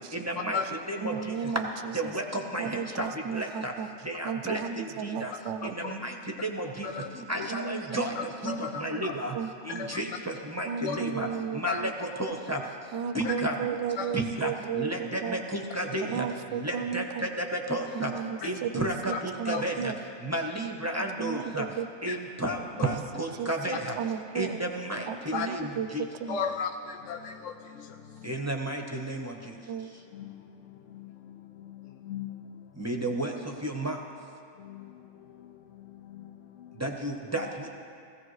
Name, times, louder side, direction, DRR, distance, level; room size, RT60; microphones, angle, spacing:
voice 1, 0.1-1.7 1.9-3.7 4.0-5.3 5.6-9.4 9.6-11.3 11.5-12.6 13.1-13.6 14.1-18.1 18.4-19.9 20.2-21.7 22.0-24.0 24.3-26.1 28.2-29.6 32.8-34.0 36.8-37.7, right 1 dB, 15° right, 1 dB, 0.7 m, -33 dB
voice 2, 1.0-1.7 2.0-2.1 2.6-3.9 4.2-5.8 7.5-8.0 9.3-9.9 10.7-11.9 12.9-15.4 16.1-17.3 17.9-20.0 21.2-21.9 22.8-23.0 23.4-23.5 23.9-24.6 25.1-25.9 26.2-26.4 29.7-29.9, right 8 dB, 65° right, 9 dB, 0.8 m, -34 dB
voice 3, 5.6-5.9 6.8-7.5 8.2-9.2 9.7-10.0 10.9-11.0 11.7-11.8 13.2-13.3 14.0-14.1 15.8-15.9 18.4-18.5 19.1-19.7 22.1-22.2 23.7-23.8 25.3-25.5 26.3-28.4 30.1-32.8 34.6-36.8, left 6 dB, 65° left, 5 dB, 0.9 m, -37 dB
16.5 x 16.0 x 3.2 m, 2.5 s
omnidirectional pair, 1.5 m